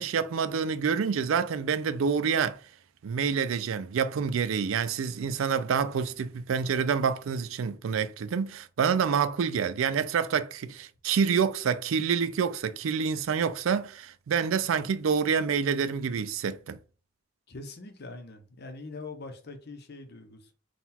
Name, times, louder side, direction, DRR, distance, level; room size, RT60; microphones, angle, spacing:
voice 1, 0.0-2.6 3.0-16.8, right 6 dB, 75° right, 0.4 m, -27 dB
voice 2, 17.5-20.5, left 3 dB, 50° left, 0.8 m, -43 dB
3.9 x 2.3 x 4.2 m
head